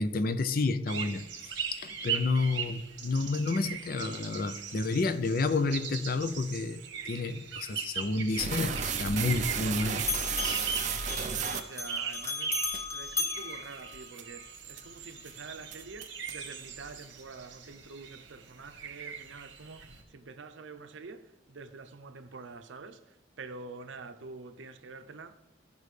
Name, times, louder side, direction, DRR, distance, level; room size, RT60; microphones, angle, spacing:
voice 1, 0.0-10.0 10.4-10.8, left 3 dB, 50° left, 0.5 m, -30 dB
sound 1, 0.9-20.0, right 7 dB, 65° right, 1.1 m, -40 dB
Bell, 8.3-9.7 10.0-14.5, left 3 dB, 15° left, 0.7 m, -37 dB
sound 2, 8.4-12.3 12.7-12.8 13.4-13.5 13.9-14.2 14.7-15.0 15.3-15.4 15.7-16.5, right 6 dB, 40° right, 0.5 m, -33 dB
voice 2, 11.1-25.4, right 4 dB, 80° right, 0.6 m, -47 dB
15.5 x 5.3 x 3.3 m
head